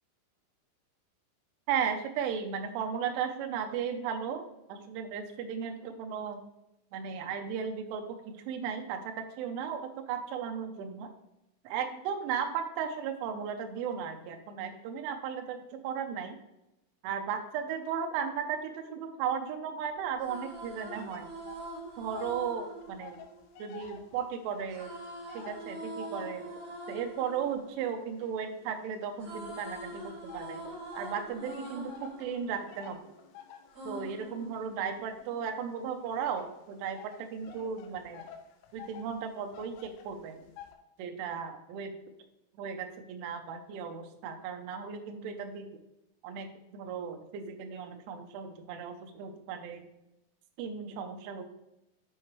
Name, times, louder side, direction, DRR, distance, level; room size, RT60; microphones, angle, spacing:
voice 1, 1.7-4.4 4.7-6.4 6.9-11.1 11.6-16.4 17.0-21.3 22.0-23.2 23.6-24.9 25.3-26.5 26.9-33.1 33.9-38.3 38.7-40.4 41.0-41.9 42.6-45.7 46.2-49.9 50.6-51.5, right 7 dB, 80° right, 5 dB, 3.2 m, -36 dB
sound 1, 20.0-24.1 24.7-28.7 29.0-33.2 33.7-35.2, right 1 dB, 40° right, 4.4 m, -44 dB
sound 2, 20.9-22.5 22.7-26.4 27.0-29.1 29.7-40.7, left 8 dB, 80° left, 3.2 m, -52 dB
13.0 x 4.8 x 3.1 m, 0.88 s
omnidirectional pair, 5.8 m